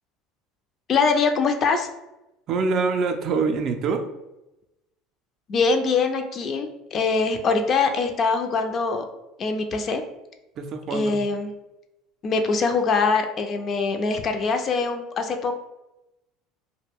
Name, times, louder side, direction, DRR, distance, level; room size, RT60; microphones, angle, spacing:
voice 1, 0.9-1.9 5.5-9.1 9.4-10.0 10.9-11.5 12.2-15.5, left 4 dB, 45° left, 6 dB, 0.4 m, -23 dB
voice 2, 2.5-4.1 10.6-11.3, right 4 dB, 50° right, 5 dB, 0.4 m, -25 dB
2.3 x 2.1 x 3.4 m, 0.94 s
hypercardioid pair, 85°, 0 cm